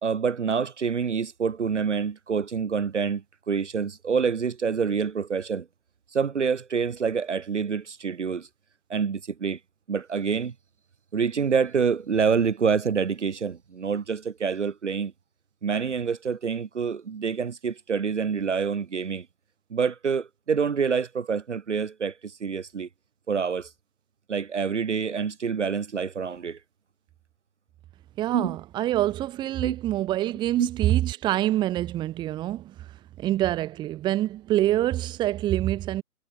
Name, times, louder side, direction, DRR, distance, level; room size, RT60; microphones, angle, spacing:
voice 1, 0.0-5.7 6.1-8.5 8.9-9.6 9.9-10.5 11.1-15.1 15.6-19.3 19.7-22.9 23.3-23.7 24.3-26.6 28.3-28.6 29.6-29.7 30.6-30.7, right 6 dB, 50° right, 2.3 m, -27 dB
voice 2, 28.2-32.9 33.2-36.0, right 14 dB, 10° right, 3.0 m, -26 dB
figure-of-eight pair, 150°, 45 cm